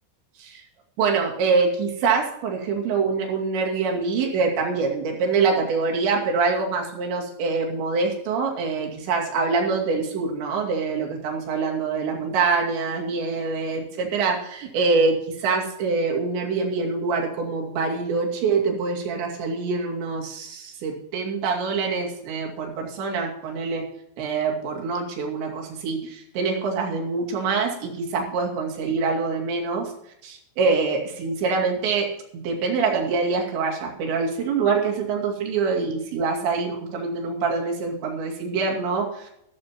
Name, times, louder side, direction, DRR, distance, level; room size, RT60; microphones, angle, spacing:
voice 1, 1.0-23.8 24.2-29.9 30.2-39.3, right 4 dB, 90° right, 0 dB, 4.8 m, -25 dB
14.5 x 14.0 x 3.0 m, 0.75 s
omnidirectional pair, 5.0 m